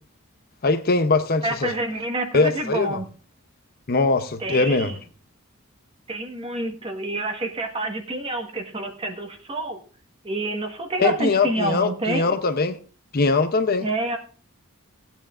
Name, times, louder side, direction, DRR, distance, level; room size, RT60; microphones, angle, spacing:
voice 1, 0.6-1.7 2.3-3.0 3.9-4.9 11.0-12.8 13.1-13.9, left 3 dB, 45° left, 0.7 m, -21 dB
voice 2, 1.4-3.1 4.4-5.0 6.1-9.8 10.2-12.3 13.8-14.2, right 2 dB, 25° right, 1.4 m, -28 dB
18.0 x 9.0 x 2.5 m
head